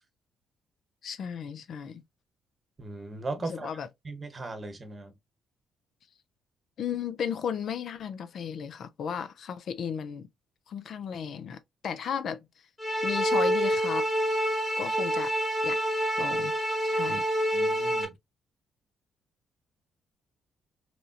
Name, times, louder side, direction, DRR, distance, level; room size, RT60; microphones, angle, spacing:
voice 1, 1.0-2.0 3.4-3.9 6.8-10.3 10.7-12.5 13.0-14.1 14.8-15.3 15.6-15.8 16.2-16.5 16.8-17.3, left 7 dB, 65° left, 0.4 m, -35 dB
voice 2, 2.8-3.7 4.0-5.1 17.1-17.2 17.5-18.1, right 2 dB, 30° right, 0.9 m, -38 dB
sound 1, 12.8-18.0, equal, 10° left, 1.2 m, -27 dB
3.0 x 2.6 x 2.3 m
cardioid pair, 90°, 0 cm